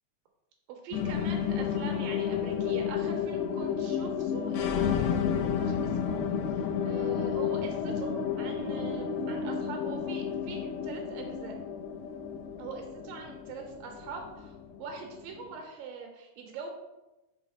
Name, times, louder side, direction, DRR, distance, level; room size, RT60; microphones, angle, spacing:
voice 1, 0.7-6.2 6.6-11.6 12.6-16.7, right 5 dB, 80° right, 3 dB, 2.3 m, -43 dB
sound 1, 0.9-15.5, left 7 dB, 90° left, 2.4 m, -31 dB
5.5 x 4.1 x 4.4 m, 1.0 s
omnidirectional pair, 4.2 m